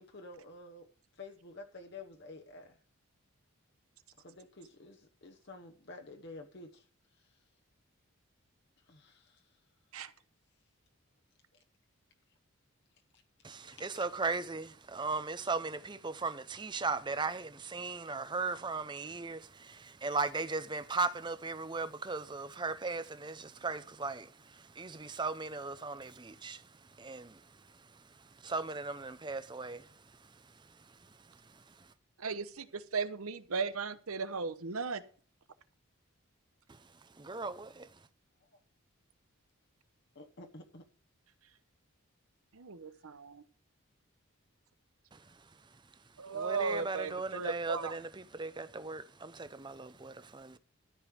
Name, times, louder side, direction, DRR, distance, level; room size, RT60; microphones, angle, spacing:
voice 1, 0.0-2.8 4.2-6.9 7.1-7.4 8.9-9.5 14.0-14.1 38.4-38.6 40.1-40.9 43.0-43.1, left 2 dB, 50° left, 1.1 m, -51 dB
voice 2, 13.4-26.7 27.0-27.4 28.4-29.9 31.6-31.7 37.2-37.9 45.1-45.3 46.3-50.6, right 4 dB, 20° right, 0.6 m, -37 dB
voice 3, 32.2-35.0 42.5-43.4 46.2-47.9, right 4 dB, 80° right, 0.9 m, -36 dB
13.0 x 5.3 x 6.4 m
head